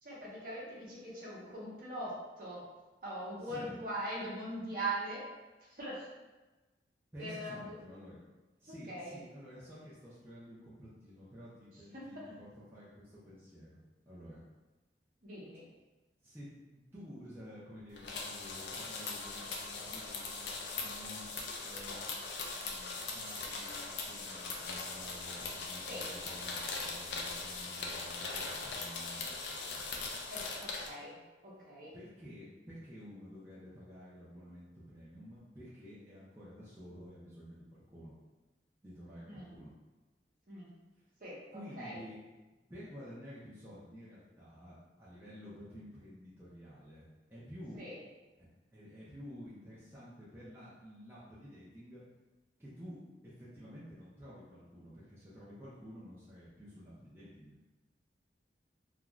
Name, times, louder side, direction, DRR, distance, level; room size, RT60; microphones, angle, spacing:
voice 1, 0.0-2.6 3.0-5.2 5.7-6.1 7.2-7.7 8.8-9.2 11.9-12.0 15.2-15.7 25.8-26.1 30.3-31.9 39.3-39.5 40.5-40.7 41.2-42.0 47.7-47.9, right 1 dB, 50° right, -6 dB, 0.8 m, -41 dB
voice 2, 3.4-3.7 7.1-8.2 8.6-13.8 14.1-14.4 16.2-21.2 21.6-29.8 31.9-38.1 38.8-39.7 41.5-42.2 42.7-47.8 48.4-52.0 52.6-53.0 53.2-57.5, equal, 15° right, -10 dB, 0.5 m, -51 dB
sound 1, 18.0-30.9, left 3 dB, 70° left, 0.4 m, -40 dB
sound 2, 21.4-21.7 23.2-24.3, right 3 dB, 80° right, 0.6 m, -56 dB
2.4 x 2.3 x 3.0 m, 1.2 s
head